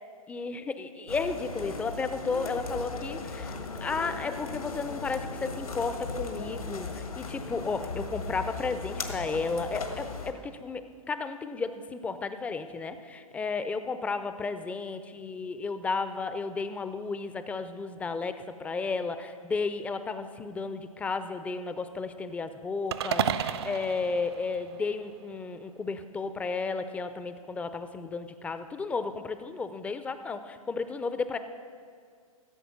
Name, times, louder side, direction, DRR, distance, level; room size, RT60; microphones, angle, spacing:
voice 1, 0.3-3.6 3.8-31.4, left 4 dB, 5° left, 10 dB, 0.4 m, -33 dB
sound 1, 1.1-10.3, left 3 dB, 80° left, 1.5 m, -37 dB
sound 2, 22.9-25.2, right 8 dB, 45° right, 0.5 m, -32 dB
15.5 x 7.9 x 5.8 m, 2.1 s
figure-of-eight pair, 115°, 18 cm